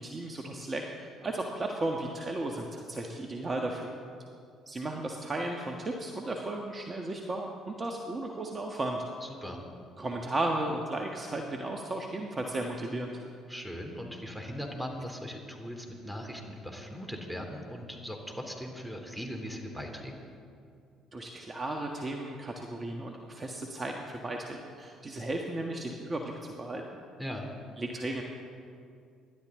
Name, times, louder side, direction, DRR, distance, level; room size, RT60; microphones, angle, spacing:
voice 1, 0.0-4.0 4.7-9.1 10.0-13.2 21.1-26.8 27.8-28.2, right 2 dB, 30° right, 1 dB, 1.6 m, -35 dB
voice 2, 9.2-9.6 13.5-20.1 27.2-27.5, equal, 5° right, 3 dB, 3.1 m, -39 dB
26.0 x 12.0 x 3.8 m, 2.4 s
hypercardioid pair, 55°, 0 cm